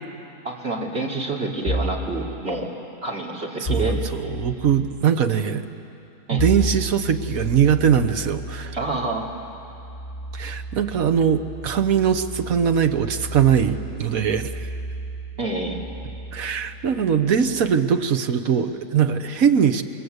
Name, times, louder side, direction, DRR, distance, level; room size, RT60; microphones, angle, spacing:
voice 1, 0.4-2.7 3.0-4.0 6.3-6.4 8.7-9.3 15.4-15.8, right 2 dB, 45° right, -2 dB, 3.2 m, -27 dB
sound 1, 1.7-2.1 3.6-4.6 6.4-17.7, right 1 dB, 35° left, 5.0 m, -32 dB
voice 2, 3.6-5.7 6.3-8.7 10.3-14.7 16.3-19.8, right 8 dB, 65° right, 8 dB, 1.5 m, -21 dB
28.5 x 22.0 x 8.1 m, 2.8 s
omnidirectional pair, 1.6 m